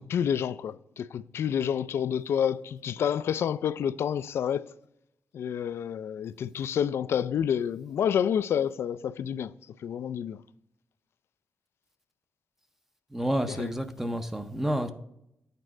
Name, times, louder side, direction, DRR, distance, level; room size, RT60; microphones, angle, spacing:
voice 1, 0.0-4.6 5.3-9.5 9.8-10.4 13.6-13.7, left 8 dB, 75° left, 0.3 m, -29 dB
voice 2, 13.1-14.9, equal, 10° right, 0.5 m, -29 dB
8.3 x 4.4 x 4.9 m
wide cardioid pair, 140°, 4 cm